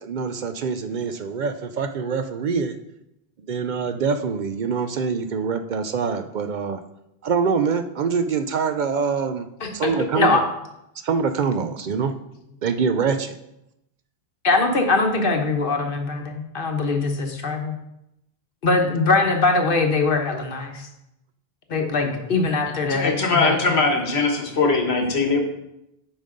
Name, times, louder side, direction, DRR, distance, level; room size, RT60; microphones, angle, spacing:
voice 1, 0.0-2.8 3.5-6.8 7.2-9.5 9.7-10.4 11.0-12.1 12.6-13.3, right 5 dB, 55° right, 8 dB, 0.6 m, -24 dB
voice 2, 9.6-10.4 14.4-17.8 18.6-20.9 21.7-23.8, left 3 dB, 60° left, 4 dB, 1.2 m, -22 dB
voice 3, 22.9-25.4, left 3 dB, 80° left, 2 dB, 1.5 m, -21 dB
8.9 x 5.3 x 3.8 m, 0.85 s
omnidirectional pair, 1.1 m